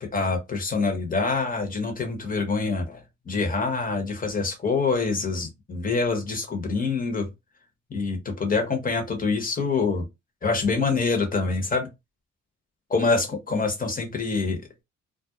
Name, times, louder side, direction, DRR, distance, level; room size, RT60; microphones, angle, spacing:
voice 1, 0.0-3.0 3.3-7.3 7.9-10.0 10.4-11.9 12.9-14.6, left 4 dB, 30° left, 1.0 m, -25 dB
2.4 x 2.1 x 2.8 m
cardioid pair, 90°, 30 cm